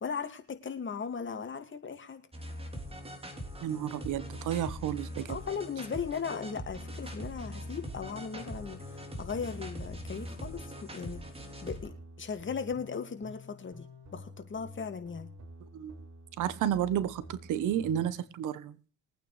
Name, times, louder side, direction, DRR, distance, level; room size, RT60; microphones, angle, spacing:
voice 1, 0.0-2.2 5.3-11.2 11.6-13.9 14.1-15.3, left 6 dB, 40° left, 8 dB, 2.3 m, -37 dB
sound 1, 2.3-11.9, equal, 20° right, 3.7 m, -42 dB
voice 2, 3.6-5.3 15.7-15.9 16.4-18.7, right 10 dB, 85° right, 17 dB, 1.2 m, -31 dB
sound 2, 7.4-18.1, left 1 dB, 65° right, 5.8 m, -50 dB
22.5 x 9.1 x 3.3 m, 0.39 s
cardioid pair, 90°, 30 cm